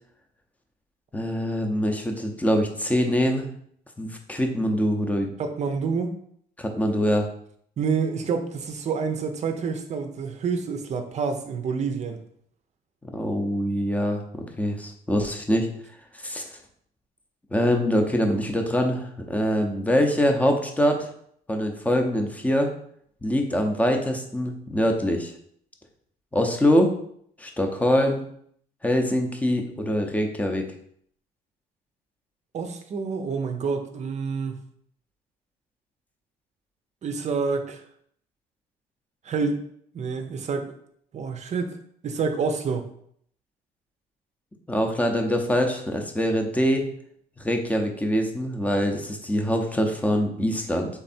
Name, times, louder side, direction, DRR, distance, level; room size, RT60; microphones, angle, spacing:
voice 1, 1.1-3.5 4.0-5.3 6.6-7.3 13.0-15.7 16.1-16.5 17.5-21.1 21.5-22.7 23.2-25.3 26.3-26.9 27.4-28.2 28.8-30.7 44.7-46.9 47.4-50.9, equal, 10° left, 4 dB, 0.7 m, -24 dB
voice 2, 5.4-6.1 7.8-12.2 32.5-34.6 37.0-37.8 39.2-39.6 39.9-40.7 41.1-41.7 42.0-42.9, right 5 dB, 45° right, 6 dB, 0.6 m, -28 dB
3.6 x 3.3 x 4.2 m, 0.66 s
cardioid pair, 110°, 17 cm